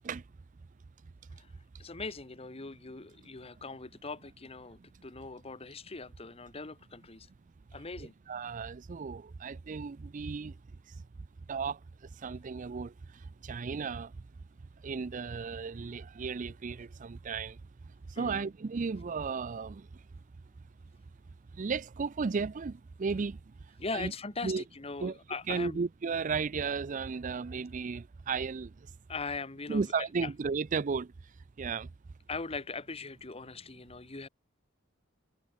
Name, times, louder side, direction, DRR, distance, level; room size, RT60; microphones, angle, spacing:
voice 1, 1.8-7.3 7.7-8.1 18.2-18.5 23.8-25.8 29.1-30.3 32.3-34.3, left 4 dB, 30° left, 1.1 m, -40 dB
voice 2, 8.0-10.6 11.5-11.8 12.2-14.1 14.8-17.6 18.1-20.0 21.5-23.5 23.9-24.1 24.4-24.6 25.0-25.2 25.5-28.7 29.7-31.1 31.6-31.9, right 5 dB, 40° right, 0.4 m, -34 dB
head